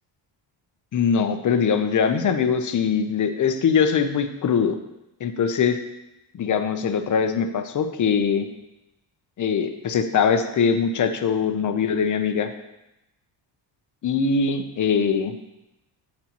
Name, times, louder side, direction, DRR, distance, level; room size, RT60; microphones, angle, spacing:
voice 1, 0.9-4.7 5.2-5.8 6.3-8.5 9.4-12.5 14.0-15.4, left 6 dB, 40° left, 8 dB, 0.7 m, -22 dB
11.5 x 4.3 x 3.0 m, 0.92 s
cardioid pair, 100°, 46 cm